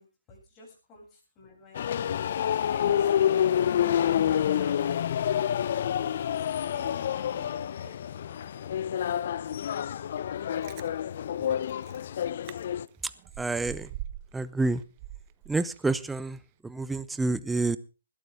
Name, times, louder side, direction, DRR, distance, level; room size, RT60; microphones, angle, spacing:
voice 1, 0.0-1.9 2.5-3.6 4.0-5.0 6.0-6.5 6.7-8.7, left 3 dB, 25° left, -1 dB, 7.9 m, -52 dB
sound 1, 1.7-12.9, left 9 dB, 50° left, 0.7 m, -28 dB
Chewing mastication, 10.4-10.9 11.5-11.6 11.8-12.0 12.5-12.6 12.9-14.4 14.7-16.0 16.4-16.5, right 13 dB, 30° right, 1.0 m, -42 dB
voice 2, 13.4-13.9 14.3-14.8 15.5-17.8, right 3 dB, 5° right, 16 dB, 0.7 m, -28 dB
20.5 x 12.5 x 3.7 m, 0.32 s
figure-of-eight pair, 140°, 0 cm